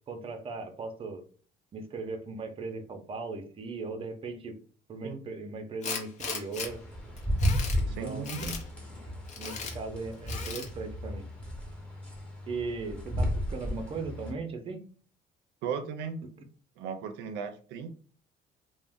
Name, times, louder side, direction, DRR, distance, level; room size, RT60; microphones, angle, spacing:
voice 1, 0.1-1.2 1.7-4.6 4.9-6.8 7.8-8.3 9.1-11.3 12.5-14.8, right 3 dB, 35° right, 6 dB, 0.5 m, -38 dB
Tools, 5.8-6.7 7.2-7.8 8.2-8.6 9.3-9.7 10.3-10.7, left 5 dB, 45° left, 0.6 m, -37 dB
sound 1, 6.6-14.3, equal, 5° left, 0.8 m, -33 dB
voice 2, 7.9-8.6 15.6-16.2 16.8-17.9, right 6 dB, 90° right, 8 dB, 0.4 m, -36 dB
2.5 x 2.1 x 3.4 m, 0.43 s
cardioid pair, 110°, 17 cm